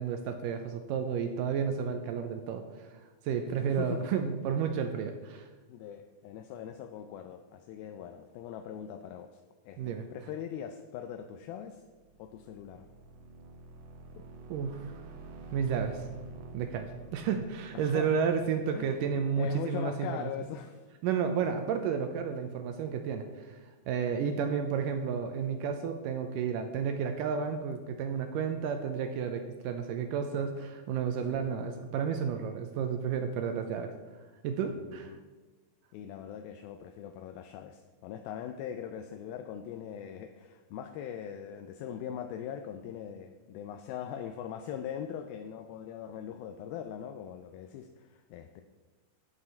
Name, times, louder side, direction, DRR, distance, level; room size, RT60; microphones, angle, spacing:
voice 1, 0.0-2.6 3.3-5.4 9.8-10.1 14.5-15.0 15.5-16.0 16.5-20.3 21.0-23.6 23.9-33.9 34.4-35.2, right 7 dB, 80° right, 6 dB, 2.0 m, -32 dB
voice 2, 3.5-4.1 5.7-11.8 12.2-12.8 14.2-14.3 17.7-18.2 18.7-19.1 19.3-20.9 21.4-21.5 31.3-31.5 34.6-35.2 35.9-48.6, left 9 dB, 80° left, 6 dB, 2.4 m, -41 dB
sound 1, 11.7-19.5, right 3 dB, 65° right, 1.9 m, -49 dB
9.7 x 8.1 x 4.3 m, 1.3 s
omnidirectional pair, 4.4 m